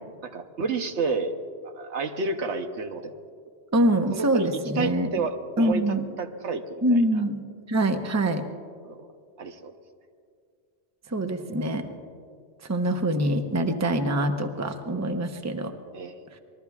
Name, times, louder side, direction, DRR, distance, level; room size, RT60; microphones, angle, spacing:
voice 1, 0.2-1.4 1.7-3.2 4.1-4.5 4.8-7.0 8.8-9.1 9.4-9.7 15.9-16.2, right 4 dB, 75° right, 6 dB, 1.2 m, -30 dB
voice 2, 3.7-5.1 5.6-6.0 6.8-7.4 7.7-8.4 11.1-11.9 12.7-15.7, right 1 dB, 15° right, 6 dB, 0.7 m, -24 dB
26.0 x 20.5 x 2.4 m, 2.2 s
omnidirectional pair, 1.2 m